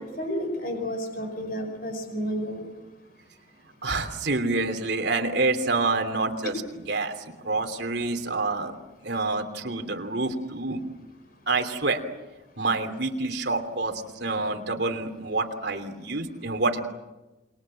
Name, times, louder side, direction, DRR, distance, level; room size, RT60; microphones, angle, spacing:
voice 1, 0.0-2.7, equal, 50° left, 5 dB, 5.1 m, -31 dB
voice 2, 3.8-6.6 6.9-7.1 7.4-8.7 9.0-10.8 11.5-12.0 12.6-16.9, right 3 dB, 60° right, 5 dB, 3.1 m, -27 dB
28.5 x 23.0 x 7.7 m, 1.1 s
head